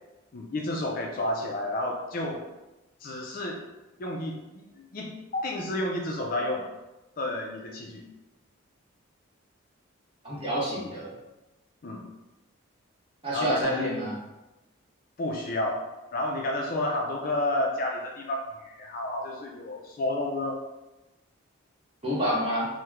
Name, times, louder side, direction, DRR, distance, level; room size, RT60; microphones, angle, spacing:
voice 1, 0.3-2.4 3.0-3.6 4.0-4.6 4.9-6.6 7.2-8.0 11.8-12.0 13.3-14.0 15.2-15.8 16.1-20.6, left 1 dB, 40° left, 0 dB, 0.3 m, -30 dB
voice 2, 10.2-11.1 13.2-14.1 22.0-22.7, equal, 25° right, -8 dB, 1.1 m, -29 dB
2.9 x 2.1 x 3.5 m, 1.0 s
head